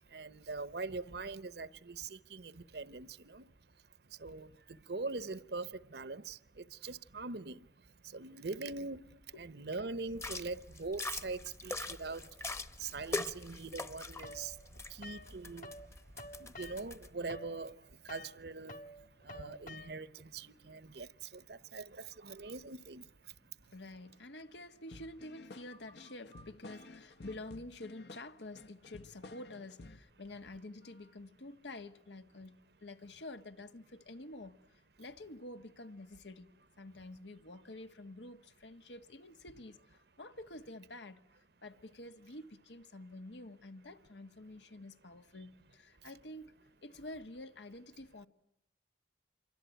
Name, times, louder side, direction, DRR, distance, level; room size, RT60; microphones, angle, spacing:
voice 1, 0.0-3.5 4.0-23.4 23.6-23.7 26.3-26.4 46.0-46.1, right 3 dB, 65° right, 1.0 m, -43 dB
sound 1, 10.1-17.1, left 2 dB, 15° left, 1.0 m, -43 dB
sound 2, 14.2-15.9 16.1-20.2, left 1 dB, 50° left, 1.7 m, -50 dB
voice 2, 23.4-46.5 46.8-48.3, left 2 dB, 90° left, 1.6 m, -49 dB
sound 3, 24.9-30.1, left 2 dB, 70° left, 1.1 m, -53 dB
27.0 x 24.0 x 9.2 m
head